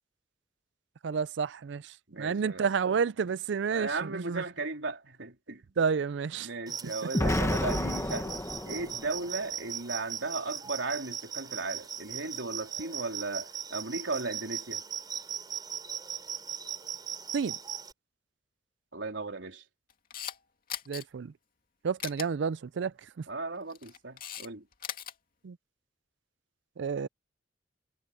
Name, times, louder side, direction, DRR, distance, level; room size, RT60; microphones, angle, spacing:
voice 1, 1.0-1.8 2.2-4.4 5.8-6.5 17.3-17.6 20.9-21.3 21.8-22.9 25.4-25.6 26.8-27.1, right 6 dB, 70° right, 0.4 m, -30 dB
voice 2, 2.1-2.7 3.7-5.6 6.4-8.4 8.7-14.8 18.9-19.6 23.3-24.6, right 3 dB, 90° right, 3.8 m, -36 dB
sound 1, 6.7-17.9, right 8 dB, 25° right, 3.5 m, -39 dB
Explosion, 7.1-9.3, left 1 dB, 15° left, 1.3 m, -30 dB
Camera, 19.9-20.4 20.7-21.0 22.0-22.3 23.6-24.5 24.7-25.1, left 9 dB, 50° left, 2.4 m, -38 dB
head